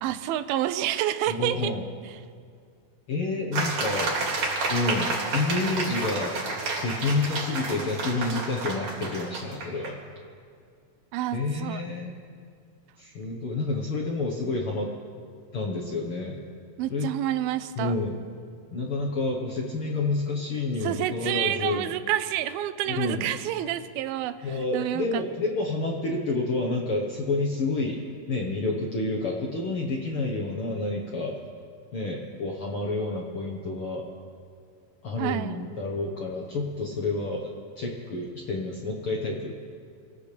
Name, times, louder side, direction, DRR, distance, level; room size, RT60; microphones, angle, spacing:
voice 1, 0.0-1.7 11.1-11.8 16.8-17.9 20.8-24.4 24.7-25.1 35.2-35.6, right 12 dB, 85° right, 12 dB, 2.5 m, -28 dB
voice 2, 1.3-1.8 3.1-4.1 4.7-10.0 11.3-12.2 13.0-14.9 15.5-16.4 16.9-17.1 17.7-18.2 18.7-21.9 22.8-23.3 24.4-28.0 28.3-31.4 31.9-34.1 35.0-39.5, left 3 dB, 70° left, -1 dB, 1.3 m, -29 dB
sound 1, 3.5-9.9, right 3 dB, 55° right, 3.4 m, -30 dB
26.5 x 15.5 x 3.4 m, 2.2 s
omnidirectional pair, 4.2 m